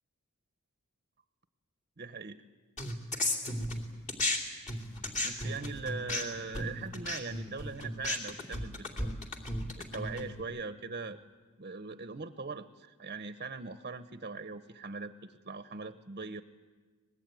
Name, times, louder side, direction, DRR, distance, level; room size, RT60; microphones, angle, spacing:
voice 1, 2.0-2.4 5.2-9.1 9.8-11.2 11.6-16.4, right 4 dB, 40° right, 11 dB, 0.8 m, -41 dB
sound 1, 2.8-4.4 4.7-10.4, left 1 dB, 35° left, 2.8 m, -34 dB
24.5 x 20.5 x 9.1 m, 1.4 s
head